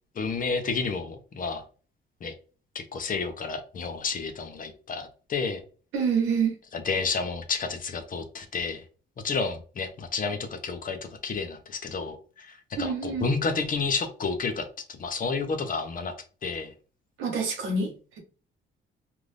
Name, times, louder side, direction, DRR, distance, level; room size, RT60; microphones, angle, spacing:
voice 1, 0.2-1.6 2.2-2.3 2.7-5.6 6.7-8.8 9.2-16.1 16.4-16.7, left 4 dB, 45° left, 0.7 m, -30 dB
voice 2, 5.9-6.5 12.8-13.3 17.2-17.9, right 5 dB, 85° right, 1.1 m, -26 dB
2.6 x 2.5 x 3.3 m
cardioid pair, 90°, 20 cm